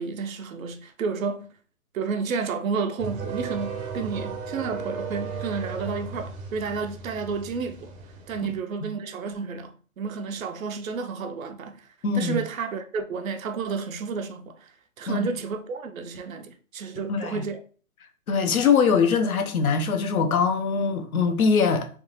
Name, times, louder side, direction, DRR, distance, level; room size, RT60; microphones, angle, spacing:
voice 1, 0.0-1.5 1.9-7.9 8.3-11.9 12.1-14.7 15.0-17.6, right 5 dB, 70° right, 0.7 m, -31 dB
sound 1, 3.0-8.6, right 5 dB, 25° right, 0.6 m, -35 dB
voice 2, 12.0-12.4 15.1-15.3 17.1-17.4 18.3-21.9, left 5 dB, 80° left, 0.8 m, -22 dB
3.4 x 2.9 x 3.1 m
hypercardioid pair, 130°, 42 cm